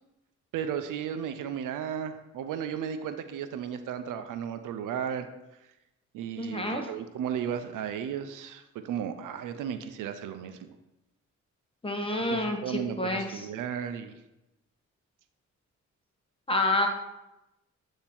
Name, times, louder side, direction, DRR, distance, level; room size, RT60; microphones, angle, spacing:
voice 1, 0.5-5.3 6.1-10.7 12.3-14.1, right 8 dB, 85° right, 9 dB, 0.5 m, -34 dB
voice 2, 6.4-6.8 11.8-13.5 16.5-16.9, left 2 dB, 15° left, 3 dB, 1.1 m, -28 dB
8.6 x 2.9 x 4.3 m, 0.95 s
cardioid pair, 70°, 31 cm